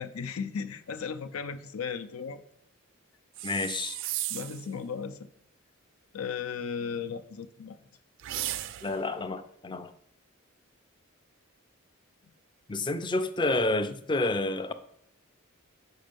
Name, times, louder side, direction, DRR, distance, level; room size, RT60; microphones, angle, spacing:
voice 1, 0.0-2.4 4.3-5.3 6.1-7.8, left 6 dB, 85° left, 9 dB, 0.6 m, -36 dB
sound 1, 3.3-4.7 8.2-9.1, right 13 dB, 60° right, 0.3 m, -35 dB
voice 2, 3.4-4.0 8.8-9.9 12.7-14.7, left 2 dB, 20° left, 10 dB, 0.4 m, -29 dB
6.4 x 5.2 x 5.2 m, 0.72 s
head